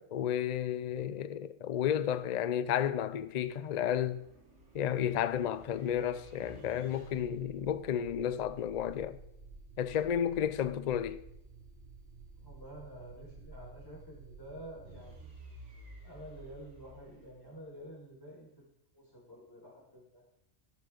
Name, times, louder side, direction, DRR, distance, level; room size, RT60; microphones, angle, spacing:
voice 1, 0.0-4.2 4.7-9.2 9.8-11.2, left 9 dB, 55° left, 0.4 m, -32 dB
sound 1, 2.2-17.9, right 3 dB, 60° right, 2.3 m, -53 dB
voice 2, 12.4-15.2 16.0-18.7 18.9-20.2, equal, 15° left, 5.0 m, -49 dB
13.0 x 11.5 x 3.9 m
omnidirectional pair, 1.3 m